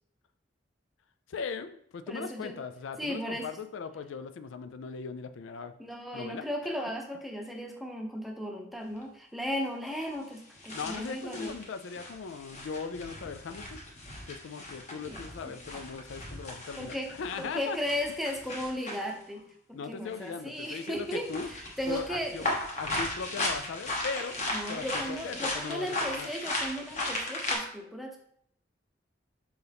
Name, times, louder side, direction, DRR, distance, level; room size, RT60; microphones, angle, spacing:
voice 1, 1.3-5.7 6.1-6.5 10.7-13.8 14.3-17.8 19.7-21.5 21.9-22.5 22.8-24.4 24.7-26.3, left 5 dB, 80° left, 11 dB, 0.4 m, -39 dB
voice 2, 2.1-2.5 3.0-3.5 5.8-11.5 15.1-15.5 16.8-17.1 17.4-19.4 19.7-22.4 24.5-28.2, equal, ahead, 1 dB, 0.7 m, -36 dB
sound 1, 9.0-9.1 10.0-10.1 10.6-19.1 20.1-20.3 20.6-27.6, left 2 dB, 35° left, 1.2 m, -36 dB
6.9 x 3.9 x 3.5 m, 0.68 s
head